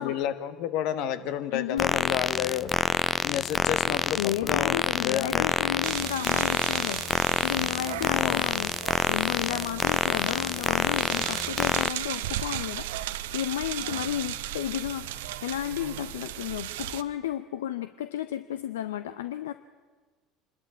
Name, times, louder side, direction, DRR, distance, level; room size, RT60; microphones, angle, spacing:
voice 1, 0.0-2.7 3.2-5.7 7.8-8.4, left 10 dB, 65° left, 11 dB, 1.3 m, -31 dB
voice 2, 1.5-1.9 4.1-8.7 9.1-19.5, left 11 dB, 80° left, 12 dB, 0.6 m, -33 dB
sound 1, 1.8-11.9, left 5 dB, 30° left, 0.5 m, -27 dB
sound 2, 5.8-17.0, right 13 dB, 75° right, 0.7 m, -36 dB
26.0 x 12.5 x 8.3 m, 1.4 s
hypercardioid pair, 70°, 0 cm